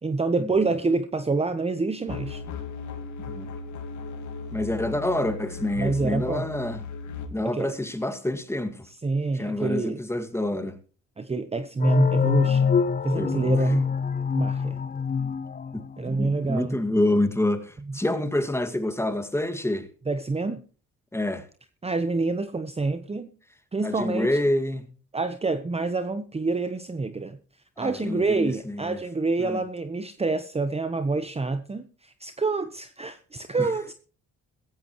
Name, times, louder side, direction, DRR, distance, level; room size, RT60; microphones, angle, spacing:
voice 1, 0.0-2.4 5.8-6.5 7.4-7.7 9.0-10.0 11.2-12.7 13.0-13.9 14.3-14.8 16.0-16.8 17.9-18.0 20.1-20.6 21.8-23.3 23.7-24.3 25.1-27.4 27.8-33.9, right 3 dB, 20° right, 1.0 m, -27 dB
sound 1, 2.1-7.3, left 5 dB, 75° left, 2.7 m, -37 dB
voice 2, 4.5-6.8 7.3-8.8 9.4-10.8 13.2-13.5 15.7-19.9 21.1-21.4 23.8-24.8 27.8-29.0 29.4-29.6 33.6-33.7, left 1 dB, 10° left, 2.0 m, -27 dB
sound 2, 11.8-16.3, left 6 dB, 30° left, 0.6 m, -25 dB
16.0 x 15.0 x 3.1 m
cardioid pair, 90°, 30 cm